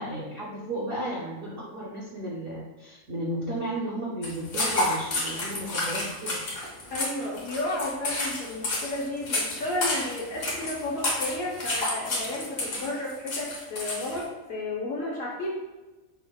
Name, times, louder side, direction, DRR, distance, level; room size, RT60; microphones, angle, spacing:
voice 1, 0.0-6.4, right 1 dB, 60° right, -5 dB, 0.6 m, -34 dB
sound 1, 4.2-14.2, left 2 dB, 75° left, 1.4 m, -30 dB
voice 2, 6.9-15.5, left 2 dB, 55° left, -4 dB, 0.8 m, -32 dB
5.5 x 2.0 x 2.2 m, 1.2 s
omnidirectional pair, 1.5 m